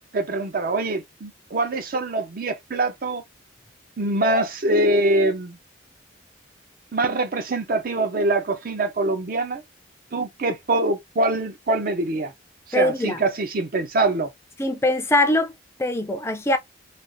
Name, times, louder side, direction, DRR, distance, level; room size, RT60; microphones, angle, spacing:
voice 1, 0.1-3.2 4.0-5.6 6.9-9.6 10.1-12.3 12.7-14.3, right 2 dB, 50° right, 0.6 m, -24 dB
voice 2, 12.7-13.2 14.6-15.5 15.8-16.6, left 1 dB, 15° left, 0.4 m, -22 dB
3.3 x 2.4 x 2.6 m
head